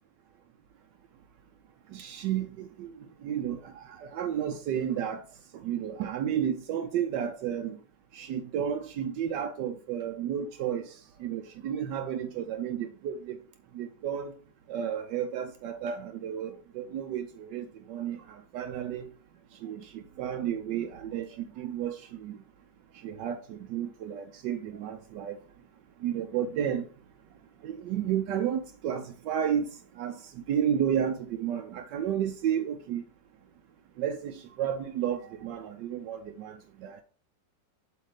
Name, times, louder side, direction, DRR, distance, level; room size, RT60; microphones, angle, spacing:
voice 1, 1.9-2.9 3.2-5.2 5.6-7.8 8.1-10.9 11.2-13.4 13.7-14.3 14.7-18.2 18.5-19.0 19.6-22.4 23.0-25.4 26.0-26.8 27.6-29.7 30.0-30.2 30.5-33.0 34.0-37.0, right 9 dB, 80° right, 1.2 m, -32 dB
7.6 x 3.2 x 4.9 m
omnidirectional pair, 1.9 m